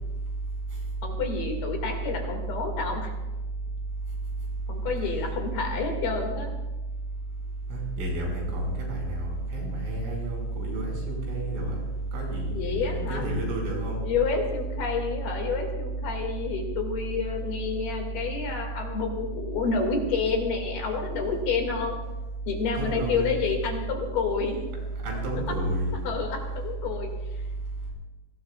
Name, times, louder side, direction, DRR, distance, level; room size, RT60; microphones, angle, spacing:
voice 1, 1.0-3.1 4.7-6.5 12.5-13.3 14.0-22.0 22.5-24.6 26.1-27.1, left 5 dB, 60° left, 2 dB, 3.6 m, -29 dB
voice 2, 7.7-11.8 12.1-14.0 22.8-23.4 25.0-25.9, right 1 dB, 90° right, -1 dB, 7.9 m, -30 dB
27.0 x 20.0 x 2.4 m, 1.1 s
omnidirectional pair, 5.6 m